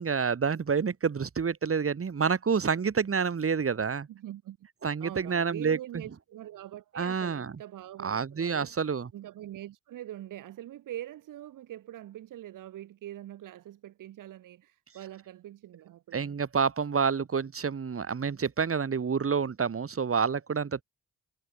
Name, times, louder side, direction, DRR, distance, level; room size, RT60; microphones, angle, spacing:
voice 1, 0.0-4.1 4.8-6.0 6.9-7.5 8.0-9.1 16.1-20.8, right 6 dB, 45° right, 2.6 m, -28 dB
voice 2, 4.1-4.6 5.0-8.8 9.1-16.4, right 13 dB, 80° right, 4.1 m, -43 dB
supercardioid pair, 50°, 32 cm